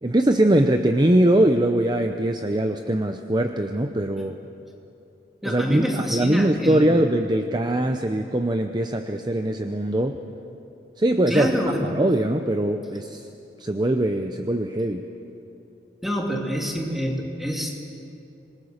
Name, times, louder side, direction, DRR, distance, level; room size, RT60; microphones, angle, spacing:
voice 1, 0.0-4.4 5.4-10.2 11.0-11.5 11.8-13.3 13.6-15.0, right 1 dB, 25° right, 6 dB, 0.7 m, -22 dB
voice 2, 5.4-7.0 11.3-11.9 16.0-17.8, equal, ahead, 0 dB, 2.5 m, -27 dB
26.5 x 20.5 x 6.6 m, 2.8 s
head